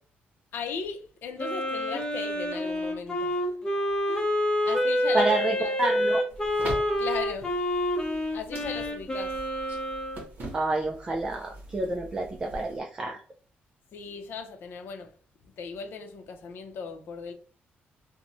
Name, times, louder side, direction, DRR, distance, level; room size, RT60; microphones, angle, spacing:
voice 1, 0.5-3.6 4.1-4.3 4.6-5.8 7.0-7.6 8.3-9.4 13.9-15.1 15.6-17.3, left 5 dB, 65° left, 0.6 m, -37 dB
Wind instrument woodwind instrument, 1.4-10.2, left 1 dB, 20° left, 0.6 m, -28 dB
voice 2, 5.1-6.2 10.5-13.2, right 2 dB, 20° right, 0.3 m, -28 dB
sound 1, 6.3-12.8, right 1 dB, 50° right, 0.8 m, -43 dB
2.9 x 2.1 x 2.6 m
cardioid pair, 155°, 4 cm